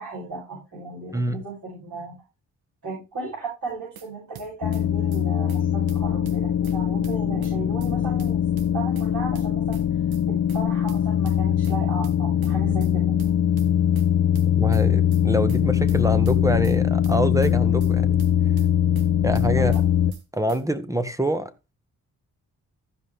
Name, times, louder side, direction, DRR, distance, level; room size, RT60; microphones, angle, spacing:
voice 1, 0.0-2.1 2.8-8.4 8.7-9.8 10.3-13.1 19.6-19.8, right 3 dB, 50° right, 6.2 m, -35 dB
sound 1, 3.7-4.1 4.4-4.8 5.1-5.2 5.5-5.6 5.9-6.8 7.0-7.5 7.8-7.9 8.2-9.1 9.4-9.8 10.1-10.2 10.5-10.6 10.9-11.8 12.0-12.5 12.8-12.9 13.2-14.1 14.4-14.8 15.1-15.2 15.5-15.6 15.9-16.8 17.0-17.5 17.8-17.9 18.2-19.1 19.4-19.8 20.1-20.2 20.5-20.6, right 8 dB, 75° right, 1.4 m, -44 dB
sound 2, 4.6-20.1, left 9 dB, 45° left, 0.8 m, -22 dB
voice 2, 14.6-18.2 19.2-19.7 20.3-21.7, right 1 dB, 10° right, 1.4 m, -25 dB
14.5 x 5.5 x 3.4 m
supercardioid pair, 55°, 38 cm